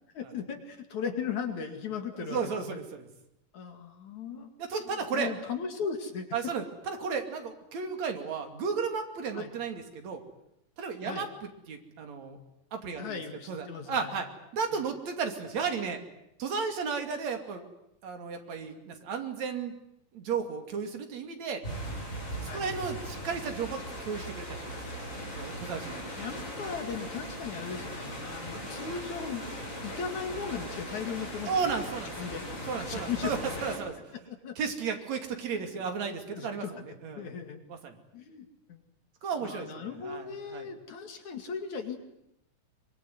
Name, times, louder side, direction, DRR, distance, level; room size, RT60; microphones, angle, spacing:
voice 1, 0.1-2.8 3.5-6.3 9.3-9.5 11.0-11.3 13.0-14.2 14.7-14.8 22.5-22.8 26.2-29.5 29.8-31.5 32.2-33.6 34.3-34.6 35.7-35.8 36.3-36.8 37.1-37.6 38.1-38.8 39.4-42.0, left 6 dB, 65° left, 6 dB, 3.6 m, -37 dB
voice 2, 2.1-3.1 4.6-5.3 6.3-10.2 10.8-11.3 11.7-12.4 12.7-13.2 13.5-14.3 14.5-16.0 16.4-17.6 18.0-19.7 20.1-21.6 22.4-25.1 25.4-25.9 31.5-32.1 32.7-33.9 34.6-36.6 37.0-37.3 37.7-38.0 39.2-40.7, right 5 dB, 60° right, 5 dB, 3.9 m, -34 dB
sound 1, 21.6-33.8, equal, 20° left, 8.3 m, -39 dB
24.0 x 23.0 x 9.5 m, 0.81 s
omnidirectional pair, 3.7 m